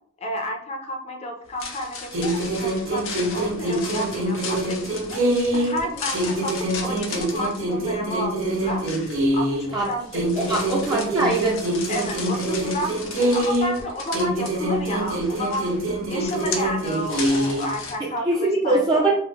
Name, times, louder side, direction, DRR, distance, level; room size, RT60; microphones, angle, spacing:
voice 1, 0.2-5.2 5.5-8.8 9.3-10.0 10.5-10.6 11.9-15.7 16.1-19.1, equal, 30° left, 2 dB, 0.5 m, -31 dB
sound 1, 1.5-18.0, left 4 dB, 75° left, 0.6 m, -37 dB
sound 2, 2.1-5.8 6.1-9.8 10.1-13.8 14.1-17.8, right 1 dB, 85° right, 0.7 m, -25 dB
voice 2, 10.5-11.6 18.0-19.1, right 2 dB, 20° right, -4 dB, 0.4 m, -22 dB
2.9 x 2.0 x 3.3 m, 0.65 s
head